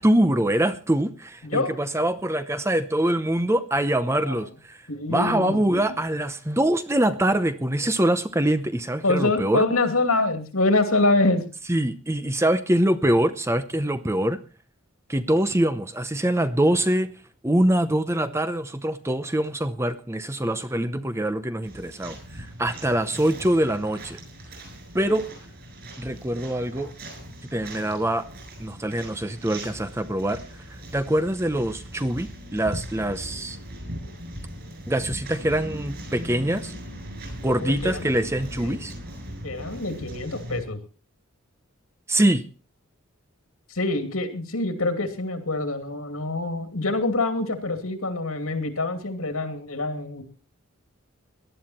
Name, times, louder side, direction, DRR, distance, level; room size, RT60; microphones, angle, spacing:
voice 1, 0.0-4.8 5.1-9.6 11.7-14.4 15.1-17.1 17.4-24.2 24.9-25.3 26.0-26.9 27.5-28.3 28.6-30.4 30.9-33.6 34.9-36.7 37.4-38.9 42.1-42.4, right 1 dB, 10° right, 11 dB, 0.7 m, -24 dB
voice 2, 4.9-6.0 9.0-11.4 25.1-25.2 37.6-38.1 38.6-38.8 39.4-40.8 43.7-50.2, left 2 dB, 75° left, 7 dB, 2.6 m, -25 dB
sound 1, 21.6-40.6, equal, 45° right, 7.9 m, -39 dB
18.0 x 11.5 x 4.4 m, 0.36 s
head